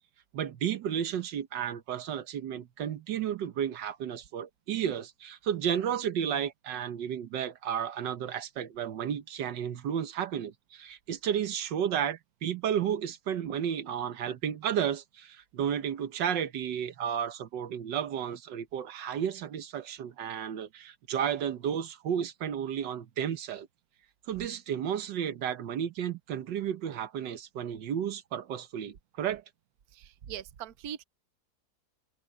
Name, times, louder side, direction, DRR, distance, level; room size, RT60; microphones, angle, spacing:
voice 1, 0.3-23.7 24.3-29.4, right 9 dB, 85° right, 1.7 m, -32 dB
voice 2, 29.9-31.0, right 10 dB, 65° right, 1.3 m, -41 dB
omnidirectional pair, 1.9 m